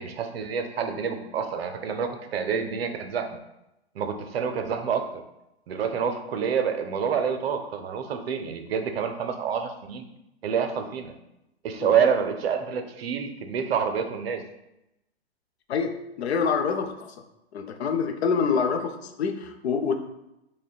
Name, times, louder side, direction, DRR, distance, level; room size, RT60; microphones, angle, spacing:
voice 1, 0.0-3.3 3.9-5.1 5.7-10.0 10.4-11.1 11.6-14.4, right 7 dB, 65° right, 6 dB, 0.6 m, -27 dB
voice 2, 15.7-17.2 17.5-19.9, left 6 dB, 70° left, 6 dB, 0.6 m, -26 dB
6.0 x 2.2 x 2.3 m, 0.88 s
hypercardioid pair, 120°, 33 cm